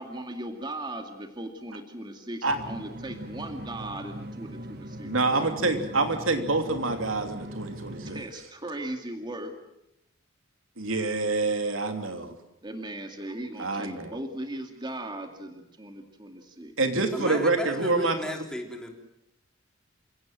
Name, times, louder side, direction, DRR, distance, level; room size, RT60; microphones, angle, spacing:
voice 1, 0.0-5.7 8.0-9.5 12.6-16.7, right 1 dB, 20° right, 4 dB, 2.2 m, -38 dB
sound 1, 2.5-8.2, equal, 55° right, 1.7 m, -40 dB
voice 2, 5.0-8.2 10.8-12.3 13.6-14.2 16.8-18.2, right 3 dB, 85° right, 5 dB, 3.0 m, -26 dB
voice 3, 17.1-18.9, equal, 5° left, 2 dB, 3.6 m, -34 dB
28.5 x 17.5 x 7.7 m, 0.84 s
head